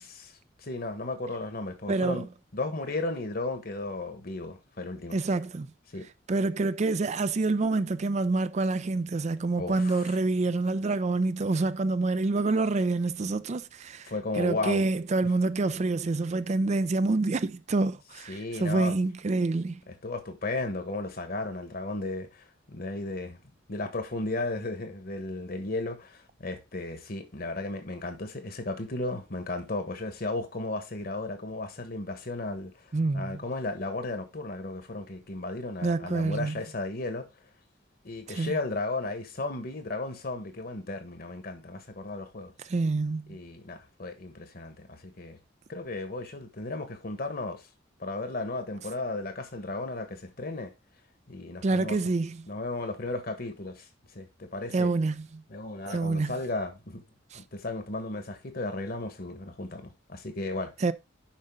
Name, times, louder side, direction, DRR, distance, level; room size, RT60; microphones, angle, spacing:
voice 1, 0.0-5.2 5.9-6.1 9.6-10.2 14.1-14.9 15.2-15.3 18.3-18.9 19.9-37.3 38.0-42.5 43.3-45.4 45.7-47.7 48.0-50.7 51.3-52.0 52.5-54.9 55.5-57.0 57.3-60.7, left 2 dB, 55° left, 1.4 m, -35 dB
voice 2, 1.9-2.3 5.1-5.7 6.3-14.1 14.4-19.8 32.9-33.4 35.8-36.6 38.3-38.5 42.7-43.4 51.6-52.4 54.7-55.3 55.9-56.3 57.3-57.4 60.8-60.9, right 3 dB, 35° right, 0.4 m, -27 dB
7.4 x 5.4 x 3.7 m
head